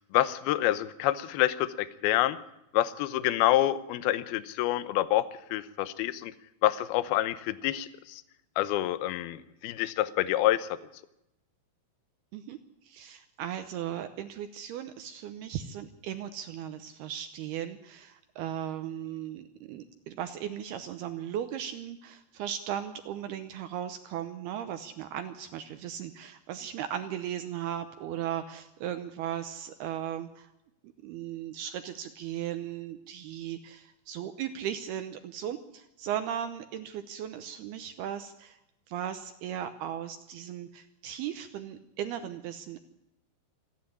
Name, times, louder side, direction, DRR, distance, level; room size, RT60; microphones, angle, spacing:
voice 1, 0.1-2.4 2.7-6.3 6.6-8.2 8.6-10.8, left 14 dB, 75° left, 15 dB, 2.4 m, -27 dB
voice 2, 12.3-30.5 31.0-38.6 38.9-42.8, right 10 dB, 75° right, 9 dB, 2.5 m, -37 dB
26.0 x 10.0 x 9.8 m, 0.86 s
omnidirectional pair, 5.3 m